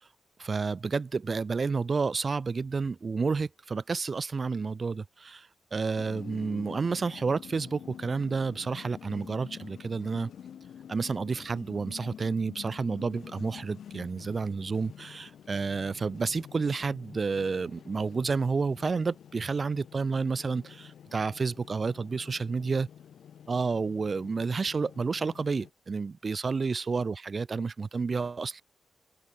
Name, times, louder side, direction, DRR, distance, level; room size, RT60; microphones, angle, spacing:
voice 1, 0.4-10.3 10.9-22.9 23.5-28.6, right 4 dB, 40° right, 2.1 m, -30 dB
sound 1, 6.0-25.7, left 9 dB, 85° left, 5.7 m, -48 dB
open air
cardioid pair, 100°, 0 cm